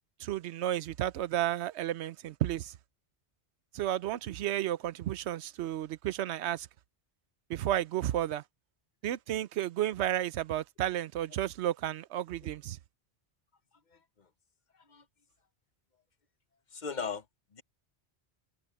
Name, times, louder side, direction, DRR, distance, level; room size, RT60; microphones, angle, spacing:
voice 1, 0.2-2.7 3.7-6.7 7.5-8.4 9.0-12.8, right 12 dB, 90° right, 0.9 m, -32 dB
voice 2, 13.9-14.3 14.7-15.1 16.7-17.3 17.5-17.6, left 5 dB, 45° left, 1.1 m, -39 dB
omnidirectional pair, 1.1 m